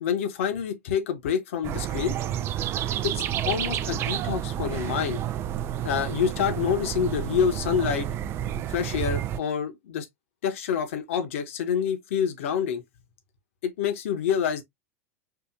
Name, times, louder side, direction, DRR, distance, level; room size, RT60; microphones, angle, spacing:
voice 1, 0.0-2.4 3.0-5.2 5.8-8.1 8.7-10.1 10.4-12.8 13.6-14.6, left 8 dB, 60° left, 1.1 m, -27 dB
sound 1, 1.6-9.4, right 11 dB, 30° right, 0.3 m, -30 dB
4.8 x 2.6 x 2.5 m
figure-of-eight pair, 85°, 8 cm